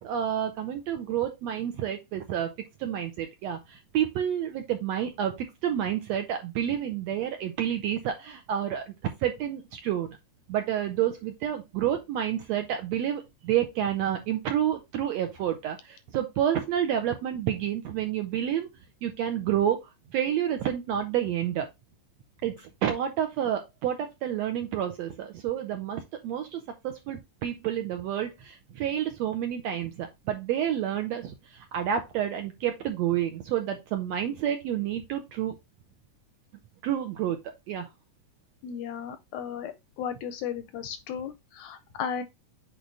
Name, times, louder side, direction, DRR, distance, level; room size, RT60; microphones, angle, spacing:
voice 1, 0.0-2.5 2.8-8.9 9.2-10.2 10.5-18.7 19.0-21.7 22.4-35.6 36.8-37.4 37.7-37.9, right 10 dB, 75° right, 1.6 m, -29 dB
voice 2, 38.6-39.7 40.0-42.2, left 8 dB, 80° left, 1.8 m, -35 dB
8.2 x 3.2 x 3.8 m
omnidirectional pair, 3.7 m